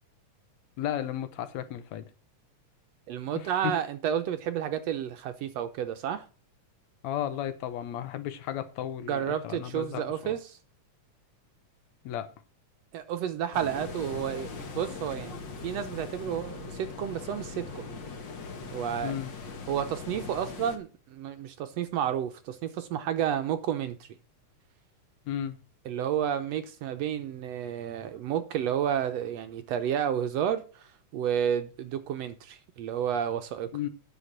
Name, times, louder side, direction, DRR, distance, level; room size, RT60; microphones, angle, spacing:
voice 1, 0.8-2.1 3.3-3.8 7.0-10.4 12.0-12.3 19.0-19.3 25.3-25.6 33.7-33.9, left 11 dB, 75° left, 2.0 m, -34 dB
voice 2, 3.1-6.3 9.1-10.6 12.9-18.0 18.7-19.2 19.7-24.1 25.9-33.7, right 9 dB, 75° right, 1.7 m, -31 dB
sound 1, 13.5-20.8, left 4 dB, 50° left, 1.6 m, -40 dB
9.4 x 6.5 x 7.2 m
omnidirectional pair, 3.4 m